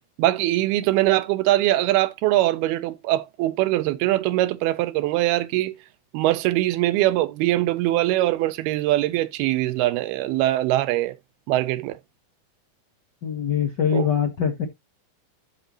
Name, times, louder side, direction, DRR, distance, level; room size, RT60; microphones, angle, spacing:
voice 1, 0.2-5.7 6.1-11.1 11.5-12.0 13.9-14.1, right 16 dB, 85° right, 2.7 m, -22 dB
voice 2, 13.2-14.7, left 8 dB, 85° left, 0.9 m, -23 dB
12.5 x 5.4 x 3.1 m
omnidirectional pair, 4.4 m